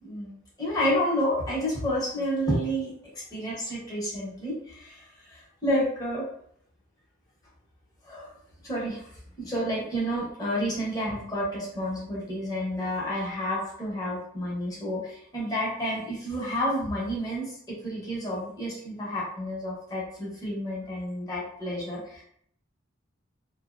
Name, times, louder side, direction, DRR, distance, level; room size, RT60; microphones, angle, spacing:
voice 1, 0.0-2.9 3.3-6.3 8.0-8.3 8.6-9.0 9.4-22.2, equal, 20° left, -6 dB, 0.8 m, -30 dB
2.6 x 2.0 x 2.4 m, 0.67 s
head